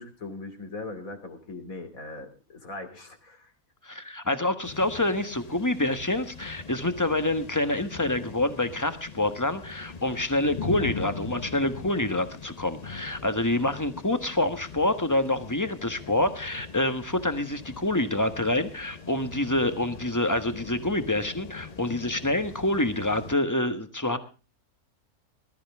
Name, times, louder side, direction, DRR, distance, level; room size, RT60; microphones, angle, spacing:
voice 1, 0.0-3.5, left 2 dB, 60° left, 6 dB, 3.3 m, -40 dB
voice 2, 3.8-24.2, left 1 dB, 15° left, 9 dB, 1.2 m, -27 dB
sound 1, 4.6-23.4, left 5 dB, 40° left, 0.6 m, -41 dB
20.5 x 13.0 x 3.5 m, 0.35 s
omnidirectional pair, 1.6 m